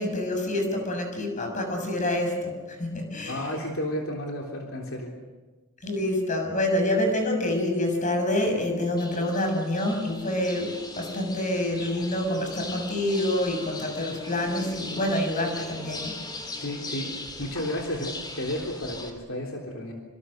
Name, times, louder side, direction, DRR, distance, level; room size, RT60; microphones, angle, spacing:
voice 1, 0.0-3.5 5.8-16.2, left 1 dB, 35° left, 3 dB, 6.4 m, -27 dB
voice 2, 3.3-5.1 16.6-19.9, left 1 dB, 65° left, 0 dB, 3.6 m, -32 dB
sound 1, 9.0-19.1, left 2 dB, 20° left, 3.3 m, -39 dB
26.5 x 26.0 x 6.6 m, 1.3 s
head